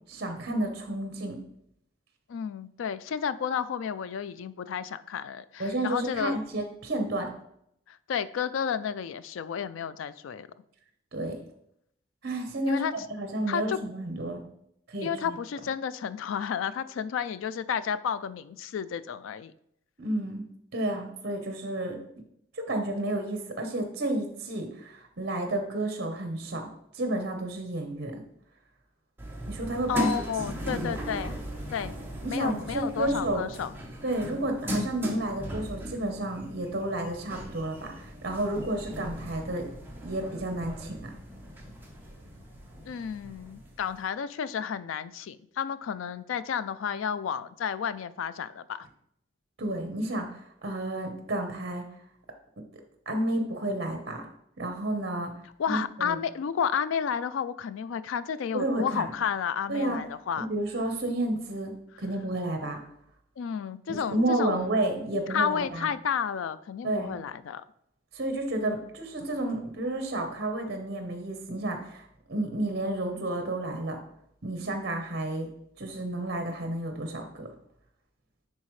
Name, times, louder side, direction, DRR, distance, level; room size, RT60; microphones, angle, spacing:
voice 1, 0.1-1.4 5.6-7.3 11.1-11.4 12.2-12.8 13.1-14.4 14.9-15.4 20.0-20.4 20.7-22.0 22.5-26.7 26.9-28.2 29.5-30.2 30.7-31.0 32.2-33.4 34.0-39.7 40.0-41.1 49.6-50.3 50.6-51.8 53.1-54.3 54.6-55.3 55.7-56.2 58.5-59.1 59.7-60.0 60.4-62.8 63.9-65.9 66.8-67.1 68.1-74.0 74.4-75.5 75.8-77.5, right 1 dB, 55° right, 5 dB, 1.0 m, -31 dB
voice 2, 2.3-6.4 7.9-10.5 12.7-12.9 13.5-13.8 15.0-19.5 29.9-31.3 31.7-32.0 32.3-33.7 42.9-48.9 55.6-60.5 63.4-64.8 65.3-67.6, left 7 dB, 85° left, 15 dB, 0.3 m, -31 dB
sound 1, 29.2-44.0, equal, 10° right, 0.9 m, -38 dB
9.7 x 3.6 x 3.2 m, 0.73 s
head